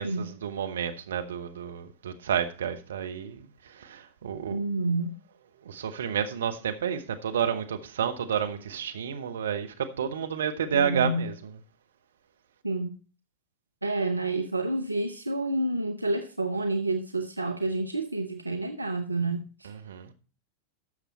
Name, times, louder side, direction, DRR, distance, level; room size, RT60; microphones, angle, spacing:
voice 1, 0.0-4.6 5.6-11.3 19.6-20.1, right 8 dB, 65° right, 1.3 m, -30 dB
voice 2, 4.5-5.2 10.7-11.3 12.6-12.9 13.8-19.7, right 2 dB, 85° right, 0.8 m, -29 dB
12.5 x 6.8 x 4.3 m
figure-of-eight pair, 90°, 0 cm